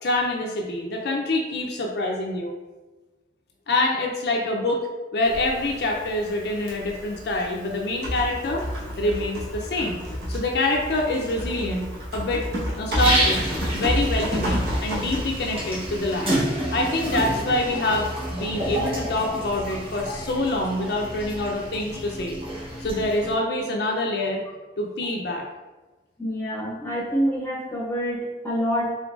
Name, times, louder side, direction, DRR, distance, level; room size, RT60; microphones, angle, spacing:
voice 1, 0.0-2.5 3.7-4.9 5.1-8.6 9.0-10.0 10.3-12.4 12.8-13.4 13.7-16.4 16.7-22.4 22.8-24.4 24.8-25.4, left 2 dB, 60° left, 0 dB, 0.4 m, -26 dB
Typing, 5.2-16.3, equal, 55° right, 1.2 m, -31 dB
sound 1, 13.0-23.3, right 1 dB, 30° right, 0.7 m, -29 dB
voice 2, 26.2-28.9, equal, 15° left, -5 dB, 0.8 m, -26 dB
3.7 x 3.7 x 2.4 m, 1.2 s
head